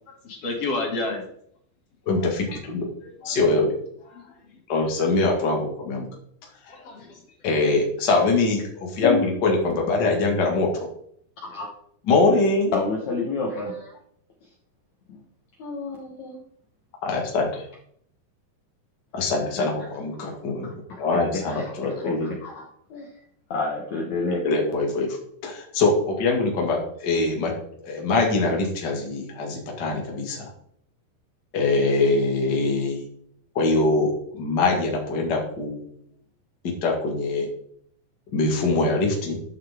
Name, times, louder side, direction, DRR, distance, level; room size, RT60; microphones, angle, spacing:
voice 1, 0.1-1.3 2.2-2.3 3.0-3.4 4.1-4.5 6.7-7.2, left 2 dB, 40° left, 0 dB, 2.5 m, -31 dB
voice 2, 2.0-2.9 3.2-3.7 4.7-6.1 7.4-10.9 12.0-12.7 17.0-17.7 19.1-20.7 21.0-22.3 24.4-25.2 25.4-27.5 27.8-30.5 31.5-33.0 33.5-35.8 36.6-37.5 38.3-39.4, left 3 dB, 90° left, 0 dB, 0.9 m, -23 dB
voice 3, 12.7-13.8 15.6-16.4 21.8-21.9 22.4-22.6 22.9-23.1 23.5-24.4, left 4 dB, 75° left, -1 dB, 1.7 m, -27 dB
13.0 x 6.9 x 3.6 m, 0.67 s
omnidirectional pair, 5.4 m